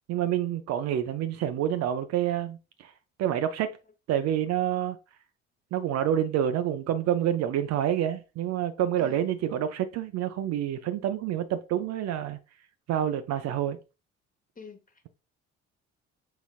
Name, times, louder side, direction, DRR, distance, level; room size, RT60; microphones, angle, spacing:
voice 1, 0.1-2.9 3.2-3.7 4.1-5.0 5.7-12.4 12.9-13.8, right 10 dB, 45° right, 0.5 m, -28 dB
voice 2, 14.6-15.1, left 5 dB, 20° left, 1.0 m, -48 dB
5.7 x 3.9 x 2.4 m
figure-of-eight pair, 45°, 36 cm